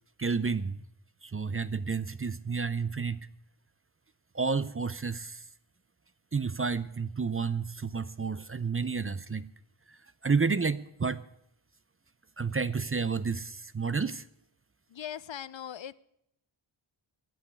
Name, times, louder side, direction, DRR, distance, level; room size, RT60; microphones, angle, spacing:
voice 1, 0.2-0.8 1.2-3.3 4.3-5.4 6.3-9.5 9.9-10.0 10.2-11.2 12.4-14.2, right 5 dB, 30° right, 15 dB, 0.5 m, -30 dB
voice 2, 14.9-15.9, left 10 dB, 65° left, 18 dB, 0.6 m, -39 dB
10.5 x 8.8 x 9.5 m, 0.76 s
wide cardioid pair, 80°, 50 cm